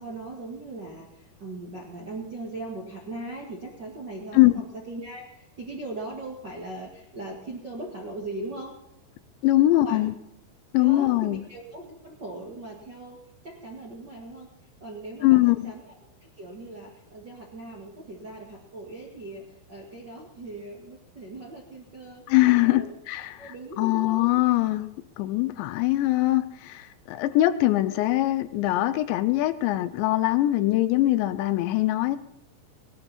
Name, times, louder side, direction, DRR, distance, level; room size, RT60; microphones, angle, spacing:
voice 1, 0.0-8.7 9.6-10.0 10.8-13.2 13.4-14.5 14.8-22.2 22.6-22.9 23.4-24.2, right 2 dB, 45° right, 1.4 m, -39 dB
voice 2, 9.4-10.1 10.7-11.4 15.2-15.7 22.3-32.2, left 16 dB, 80° left, 2.8 m, -22 dB
19.5 x 12.5 x 4.3 m
omnidirectional pair, 5.4 m